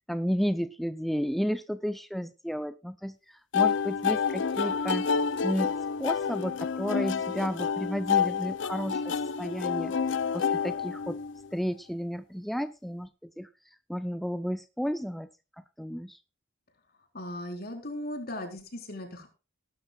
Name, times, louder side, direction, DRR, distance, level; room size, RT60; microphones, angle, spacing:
voice 1, 0.1-5.1 5.4-10.0 10.3-11.2 11.5-15.3 15.8-16.2, equal, ahead, 10 dB, 0.5 m, -32 dB
sound 1, 3.5-11.5, left 6 dB, 65° left, 0.5 m, -29 dB
voice 2, 17.1-19.3, left 1 dB, 50° left, 4 dB, 4.0 m, -37 dB
19.0 x 12.5 x 2.3 m, 0.31 s
head